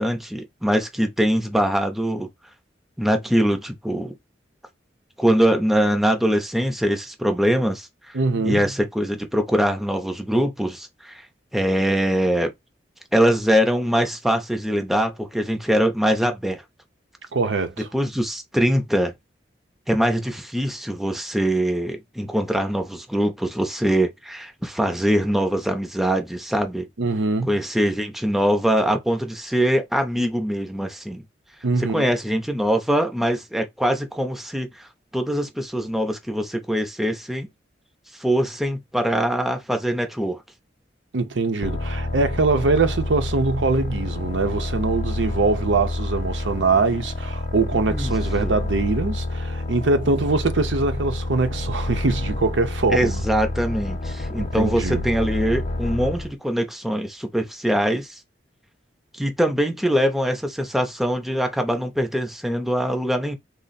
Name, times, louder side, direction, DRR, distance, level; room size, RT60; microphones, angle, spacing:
voice 1, 0.0-2.3 3.0-4.1 5.2-8.2 8.4-11.2 11.5-12.5 13.1-16.6 17.9-19.1 19.9-26.9 27.5-31.2 31.8-34.7 35.1-37.5 38.2-40.4 47.7-48.1 48.4-48.5 52.9-58.1 59.1-63.3, equal, ahead, 0.6 m, -23 dB
voice 2, 8.1-8.7 17.3-17.9 27.0-27.6 31.6-32.1 41.1-53.2 54.4-55.0, right 3 dB, 85° right, 0.7 m, -23 dB
sound 1, 41.6-56.3, left 2 dB, 40° left, 0.7 m, -28 dB
3.3 x 2.1 x 4.0 m
head